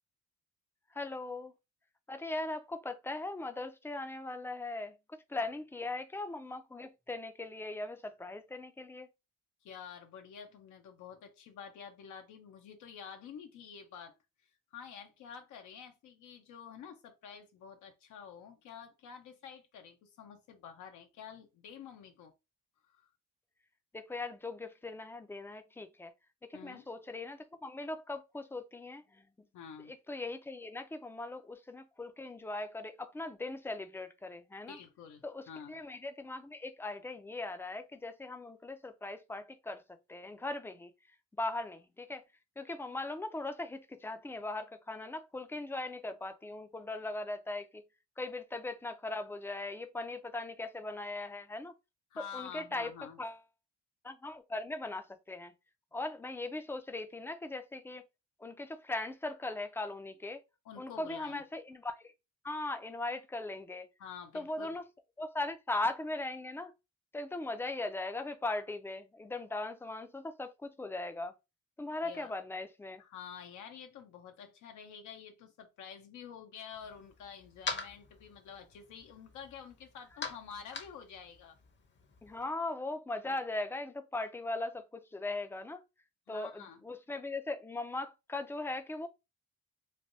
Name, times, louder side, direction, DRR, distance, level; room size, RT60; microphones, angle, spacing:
voice 1, 0.9-1.5 2.1-5.0 5.3-9.1 23.9-26.1 26.5-29.3 29.9-34.8 35.2-39.8 40.1-40.9 41.4-42.2 42.6-47.8 48.2-51.8 52.3-52.9 53.2-53.4 54.0-55.5 55.9-58.0 58.4-60.4 60.8-62.1 62.4-63.9 64.3-64.9 65.2-66.7 67.1-71.3 71.8-73.0 82.2-85.8 86.3-89.1, left 2 dB, 10° left, 0.4 m, -39 dB
voice 2, 9.6-14.2 14.7-22.3 22.9-23.1 26.5-26.9 29.5-29.9 34.7-35.8 52.1-53.2 60.6-61.4 64.0-64.8 72.0-72.3 73.0-81.6 86.3-86.8, left 7 dB, 75° left, 0.6 m, -49 dB
sound 1, 76.7-82.4, left 4 dB, 40° left, 0.7 m, -45 dB
3.3 x 2.2 x 2.5 m
cardioid pair, 90°, 30 cm